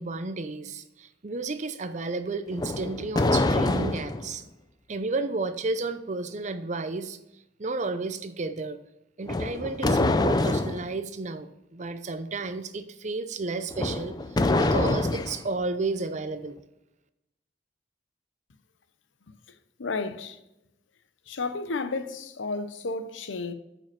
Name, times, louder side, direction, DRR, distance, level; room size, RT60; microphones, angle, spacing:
voice 1, 0.0-4.4 4.9-7.2 7.6-8.8 9.2-14.1 14.6-16.6, right 3 dB, 40° right, 0.6 m, -32 dB
sound 1, 2.5-4.3 9.3-10.8 13.7-15.4, left 2 dB, 20° left, 0.4 m, -25 dB
voice 2, 19.8-20.4 21.3-23.5, left 3 dB, 85° left, 0.7 m, -32 dB
8.7 x 5.4 x 5.7 m
head